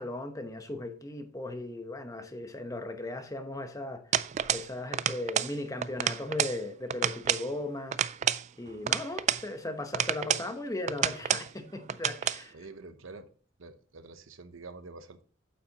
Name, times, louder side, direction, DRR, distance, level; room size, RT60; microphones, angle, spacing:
voice 1, 0.0-4.0 4.5-8.0 8.6-12.6, left 2 dB, 15° left, 0.9 m, -37 dB
sound 1, 4.1-4.7 4.9-5.5 5.8-6.6 6.9-7.5 7.9-9.5 9.9-10.5 10.9-11.5 11.9-12.4, right 9 dB, 35° right, 0.3 m, -29 dB
voice 2, 12.5-13.3 13.6-15.2, right 3 dB, 80° right, 0.8 m, -47 dB
8.5 x 8.1 x 2.9 m
head